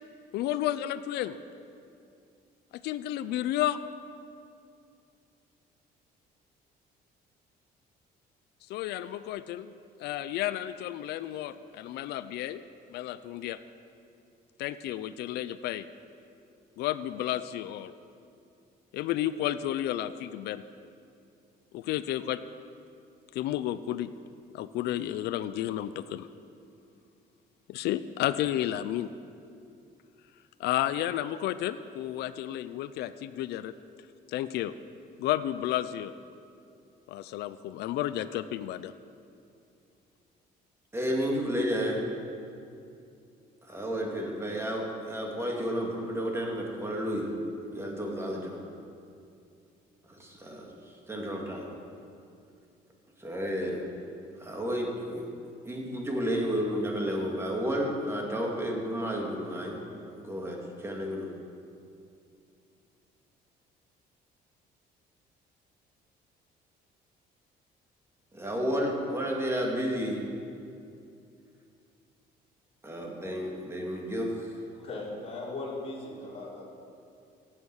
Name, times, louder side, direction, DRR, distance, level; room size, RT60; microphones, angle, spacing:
voice 1, 0.3-1.4 2.7-3.8 8.7-9.7 10.0-12.6 12.9-13.6 14.6-15.9 16.8-17.9 18.9-20.6 21.7-22.4 23.3-24.1 24.5-26.3 27.7-29.1 30.6-33.7 34.3-34.7 35.2-36.1 37.1-38.9, left 13 dB, 75° left, 13 dB, 0.5 m, -32 dB
voice 2, 40.9-42.0 43.6-47.3 47.7-48.6 50.2-50.7 51.1-51.7 53.2-53.8 54.4-55.3 55.6-59.8 60.2-61.3 68.3-70.2 72.8-74.5, equal, 15° right, -1 dB, 2.5 m, -31 dB
voice 3, 74.7-76.7, left 2 dB, 35° left, -5 dB, 3.9 m, -38 dB
17.0 x 7.4 x 6.3 m, 2.5 s
cardioid pair, 110°, 17 cm